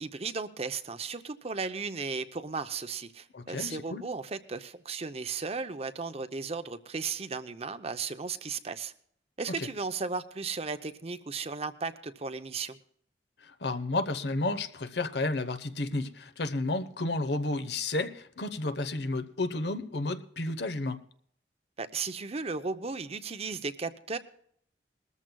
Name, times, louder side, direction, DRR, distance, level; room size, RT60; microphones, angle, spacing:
voice 1, 0.0-8.9 9.4-12.8 21.8-24.2, right 4 dB, 35° right, 0.7 m, -35 dB
voice 2, 3.3-4.0 9.5-9.7 13.4-21.0, left 2 dB, 70° left, 0.9 m, -32 dB
20.5 x 14.0 x 2.3 m
head